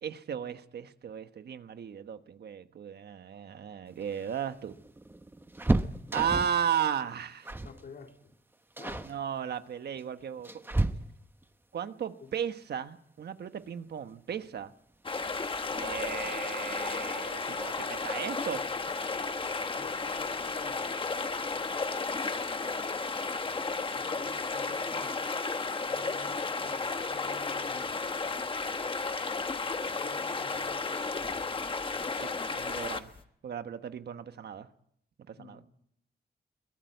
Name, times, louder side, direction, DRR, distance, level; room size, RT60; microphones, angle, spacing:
voice 1, 0.0-4.7 6.1-7.5 9.0-10.5 11.7-14.7 15.8-18.6 32.2-33.1 33.4-34.7 35.3-35.6, right 8 dB, 80° right, 10 dB, 1.2 m, -35 dB
sound 1, 4.0-6.7 7.4-7.8 8.1-8.3 8.8-9.1 10.0-11.4 13.2-13.3 13.7-13.8 14.9-15.4 15.7-15.8 16.1-16.3, right 2 dB, 15° right, 1.0 m, -32 dB
voice 2, 7.6-8.3 8.8-9.1 12.2-12.3 15.7-16.3 19.8-20.9 23.9-25.3 25.9-26.8 27.1-28.0 30.0-30.9 31.2-31.6 31.9-32.2 35.3-35.7, left 4 dB, 75° left, 3 dB, 3.5 m, -50 dB
sound 2, 15.1-33.2, left 4 dB, 30° left, 1.2 m, -33 dB
22.5 x 18.0 x 9.4 m, 0.72 s
wide cardioid pair, 150°, 17 cm